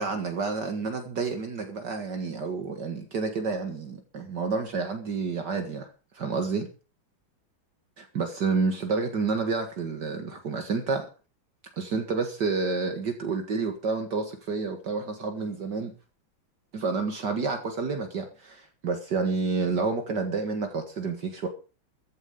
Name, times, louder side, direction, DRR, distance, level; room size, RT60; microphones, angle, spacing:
voice 1, 0.0-5.9 6.1-6.7 8.0-11.1 11.8-15.9 16.7-21.5, right 4 dB, 60° right, 5 dB, 2.3 m, -29 dB
14.5 x 10.5 x 5.3 m, 0.35 s
omnidirectional pair, 2.2 m